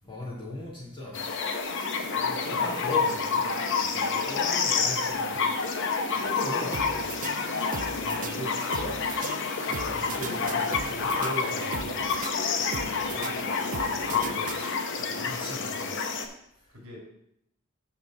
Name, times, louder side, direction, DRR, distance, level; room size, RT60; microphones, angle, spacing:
voice 1, 0.1-1.2 2.1-5.4 6.1-9.0 9.7-12.0 13.0-14.7 15.0-16.0, left 1 dB, 25° left, -5 dB, 2.7 m, -39 dB
sound 1, 1.1-16.3, left 5 dB, 60° left, 0.8 m, -28 dB
sound 2, 6.7-15.0, right 5 dB, 35° right, 0.4 m, -39 dB
voice 2, 12.5-12.9 16.7-17.0, left 1 dB, 80° right, -3 dB, 2.4 m, -52 dB
6.1 x 5.0 x 6.4 m, 0.77 s
head